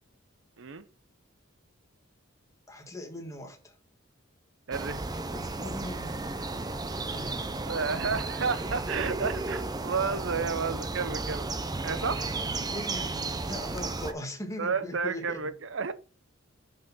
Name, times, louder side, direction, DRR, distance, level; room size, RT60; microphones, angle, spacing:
voice 1, 2.7-3.7 5.3-6.2 7.1-7.5 8.4-8.5 9.2-9.3 12.4-15.5, left 1 dB, 15° left, 1.6 m, -40 dB
sound 1, 4.7-14.1, right 2 dB, 20° right, 0.6 m, -33 dB
voice 2, 4.7-5.0 7.6-11.5 11.8-12.3 14.6-15.9, right 5 dB, 70° right, 0.7 m, -31 dB
6.2 x 4.9 x 5.5 m
head